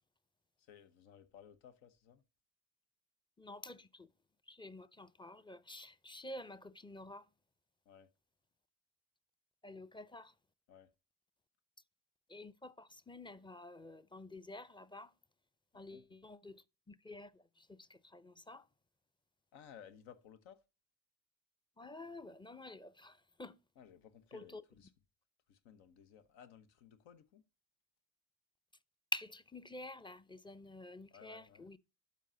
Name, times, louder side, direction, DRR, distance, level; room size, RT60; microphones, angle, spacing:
voice 1, 0.6-2.2 7.8-8.1 10.7-10.9 15.7-16.1 19.5-20.6 23.8-24.9 25.5-27.4 31.1-31.7, left 8 dB, 75° left, 1.1 m, -58 dB
voice 2, 3.4-4.1 4.5-7.3 9.6-10.3 12.3-15.1 15.7-18.7 21.8-23.6 24.3-24.6 29.1-31.8, left 2 dB, 10° left, 0.5 m, -49 dB
12.0 x 4.1 x 2.7 m
hypercardioid pair, 45°, 46 cm